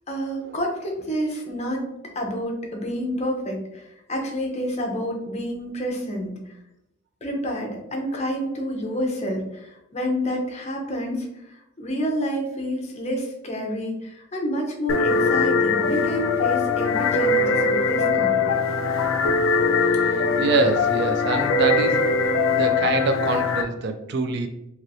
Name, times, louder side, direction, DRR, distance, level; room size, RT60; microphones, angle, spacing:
voice 1, 0.1-1.8 2.1-6.5 7.2-18.6, equal, 35° left, 1 dB, 0.7 m, -29 dB
sound 1, 14.9-23.6, left 4 dB, 80° left, 0.4 m, -21 dB
voice 2, 20.0-22.0 22.5-24.5, right 3 dB, 60° right, 7 dB, 0.4 m, -25 dB
3.0 x 2.9 x 2.6 m, 0.88 s
head